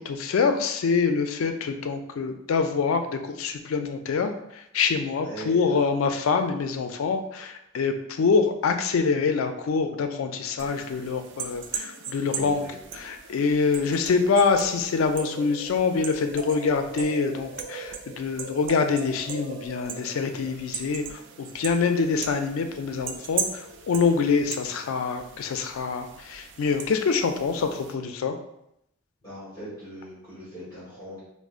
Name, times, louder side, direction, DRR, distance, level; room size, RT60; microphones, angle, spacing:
voice 1, 0.0-12.6 12.9-28.3, left 5 dB, 80° left, 7 dB, 0.4 m, -25 dB
voice 2, 5.1-5.5 12.3-12.8 29.2-31.2, equal, 20° left, -10 dB, 1.2 m, -40 dB
sound 1, 10.6-27.9, right 5 dB, 60° right, 0.4 m, -38 dB
4.9 x 2.0 x 2.4 m, 0.79 s
head